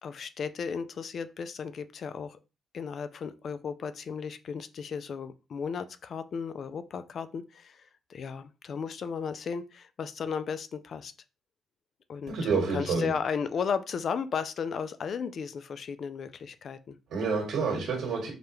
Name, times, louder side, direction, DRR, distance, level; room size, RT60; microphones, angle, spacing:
voice 1, 0.0-2.4 2.7-11.1 12.1-12.3 12.7-17.0, left 6 dB, 55° left, 12 dB, 0.3 m, -35 dB
voice 2, 12.3-13.1 17.1-18.3, right 4 dB, 80° right, -2 dB, 1.5 m, -28 dB
4.8 x 2.2 x 3.1 m, 0.31 s
cardioid pair, 90°, 0 cm